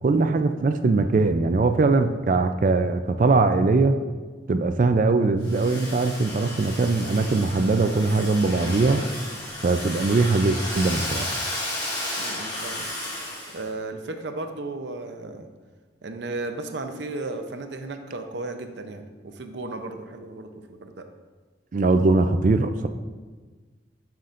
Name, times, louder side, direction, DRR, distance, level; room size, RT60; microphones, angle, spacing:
voice 1, 0.0-4.0 4.5-9.1 9.6-11.3 21.7-22.9, right 3 dB, 45° right, 8 dB, 0.4 m, -21 dB
Domestic sounds home sounds, 5.4-13.6, left 1 dB, 25° left, 1.7 m, -33 dB
voice 2, 12.2-12.9 13.5-15.5 16.0-21.1, right 2 dB, 85° right, 6 dB, 0.7 m, -35 dB
11.5 x 5.8 x 2.5 m, 1.4 s
head